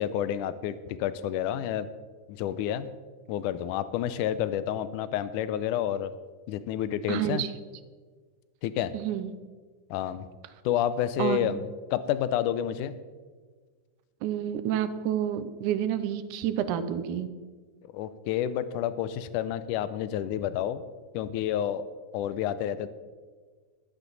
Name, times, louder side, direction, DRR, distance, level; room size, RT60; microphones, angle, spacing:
voice 1, 0.0-1.9 2.3-2.9 3.3-6.1 6.5-7.4 8.6-8.9 9.9-10.3 10.7-13.0 17.9-20.8 21.1-21.9 22.1-22.9, left 10 dB, 80° left, 14 dB, 2.1 m, -29 dB
voice 2, 7.1-7.5 8.9-9.3 11.2-11.5 14.2-17.3, right 10 dB, 80° right, 12 dB, 2.1 m, -29 dB
14.0 x 12.0 x 4.0 m, 1.5 s
omnidirectional pair, 3.7 m